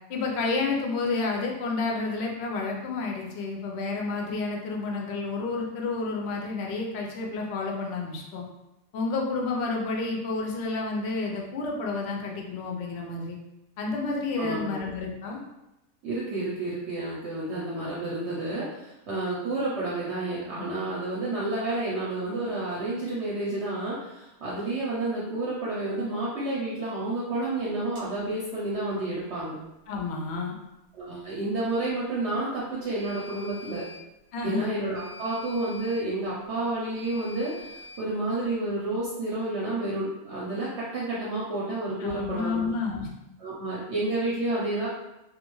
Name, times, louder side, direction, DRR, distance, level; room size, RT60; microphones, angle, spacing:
voice 1, 0.1-8.4 8.9-13.4 13.8-15.4 29.9-30.5 34.3-34.7 42.0-43.1, left 3 dB, 65° left, 0 dB, 0.7 m, -30 dB
voice 2, 14.4-14.8 16.0-29.6 30.9-33.9 34.4-42.7 43.4-44.9, right 2 dB, 60° right, -7 dB, 0.8 m, -30 dB
sound 1, 28.0-28.1 33.0-34.0 34.9-36.0 36.9-38.0, left 2 dB, 90° right, 1.1 m, -45 dB
2.4 x 2.3 x 3.0 m, 0.93 s
omnidirectional pair, 1.5 m